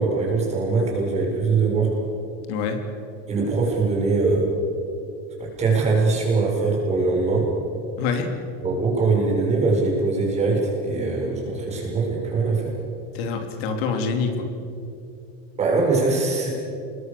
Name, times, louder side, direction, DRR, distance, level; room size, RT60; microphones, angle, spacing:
voice 1, 0.0-1.9 3.3-4.5 5.4-7.5 8.6-12.7 15.6-16.5, right 3 dB, 20° right, -2 dB, 6.7 m, -22 dB
voice 2, 2.5-2.8 8.0-8.3 13.1-14.5, left 5 dB, 80° left, 5 dB, 3.3 m, -26 dB
29.0 x 21.0 x 7.1 m, 2.6 s
cardioid pair, 170°, 30 cm